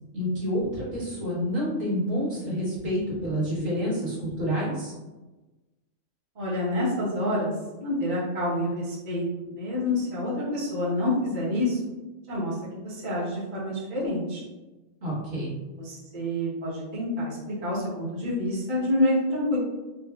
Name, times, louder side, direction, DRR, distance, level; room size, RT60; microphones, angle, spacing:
voice 1, 0.1-4.9 15.0-15.5, equal, 80° right, -8 dB, 1.8 m, -28 dB
voice 2, 6.4-7.5 7.8-11.8 12.3-14.4 15.8-19.6, left 1 dB, 40° right, -8 dB, 1.1 m, -28 dB
4.2 x 2.5 x 2.3 m, 1.1 s
omnidirectional pair, 1.4 m